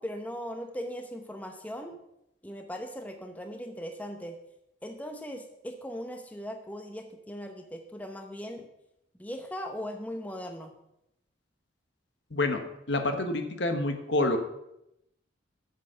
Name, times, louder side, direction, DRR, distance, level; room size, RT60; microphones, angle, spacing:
voice 1, 0.0-1.9 2.4-4.4 4.8-8.7 9.2-10.7, equal, 10° left, 5 dB, 0.7 m, -39 dB
voice 2, 12.3-12.6 12.9-14.4, left 2 dB, 65° left, 6 dB, 1.2 m, -27 dB
8.2 x 6.6 x 6.8 m, 0.83 s
head